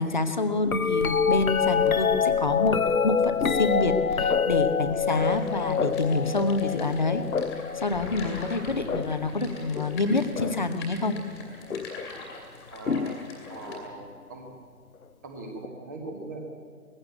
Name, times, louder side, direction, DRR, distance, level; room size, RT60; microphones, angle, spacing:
voice 1, 0.0-7.2 7.7-11.2, left 3 dB, 30° left, 9 dB, 1.0 m, -27 dB
sound 1, 0.6-10.8 11.7-12.1 12.9-13.8 15.6-15.7, left 6 dB, 65° left, 0.8 m, -27 dB
sound 2, 5.1-13.8, left 2 dB, 10° left, 2.1 m, -44 dB
voice 2, 12.7-13.2 13.5-14.5 15.2-16.5, right 2 dB, 10° right, 3 dB, 1.4 m, -40 dB
20.0 x 15.5 x 8.5 m, 2.2 s
figure-of-eight pair, 155°, 46 cm